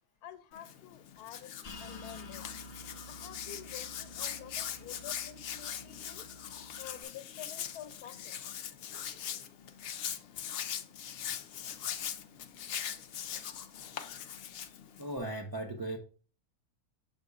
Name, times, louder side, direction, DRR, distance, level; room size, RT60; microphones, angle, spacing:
voice 1, 0.2-1.5 1.8-2.4 3.1-6.3 6.8-8.3, left 10 dB, 90° left, 1.1 m, -49 dB
Hands, 0.5-15.2, left 9 dB, 70° left, 0.5 m, -41 dB
sound 1, 1.6-7.0, left 1 dB, 45° left, 1.1 m, -50 dB
voice 2, 14.7-16.0, right 1 dB, 35° right, 0.3 m, -38 dB
7.3 x 6.6 x 2.4 m
omnidirectional pair, 1.6 m